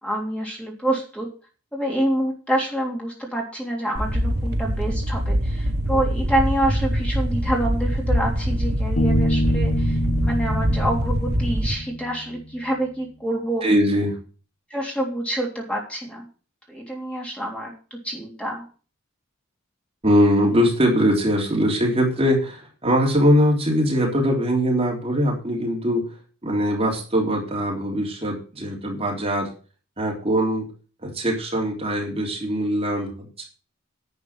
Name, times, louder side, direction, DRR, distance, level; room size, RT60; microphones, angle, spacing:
voice 1, 0.0-1.3 1.7-13.7 14.7-16.3 16.7-18.6, right 1 dB, 5° left, -1 dB, 3.3 m, -27 dB
sound 1, 3.9-11.7, equal, 50° right, 1.5 m, -23 dB
Bass guitar, 9.0-12.5, equal, 60° left, 1.5 m, -26 dB
voice 2, 13.6-14.2 20.0-26.0 26.4-29.5 30.0-30.7 31.0-33.4, equal, 30° right, -1 dB, 3.5 m, -21 dB
11.0 x 8.5 x 5.8 m, 0.37 s
head